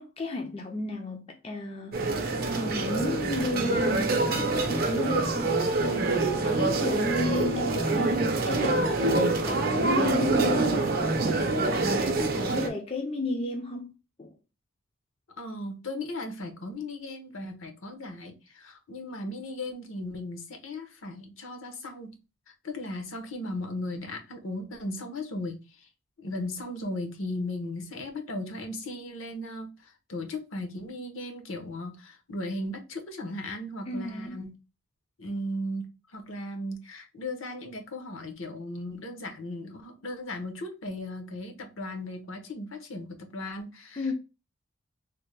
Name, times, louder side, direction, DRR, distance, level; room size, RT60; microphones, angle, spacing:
voice 1, 0.0-10.9 11.9-14.3 33.9-34.4 44.0-44.1, left 2 dB, 25° left, 0.4 m, -33 dB
sound 1, 1.9-12.7, right 2 dB, 45° right, 0.5 m, -26 dB
voice 2, 12.3-12.7 15.4-22.1 22.5-25.9 26.2-34.6 35.2-35.9 36.1-44.1, left 1 dB, 70° left, 0.8 m, -37 dB
3.3 x 2.1 x 3.1 m
head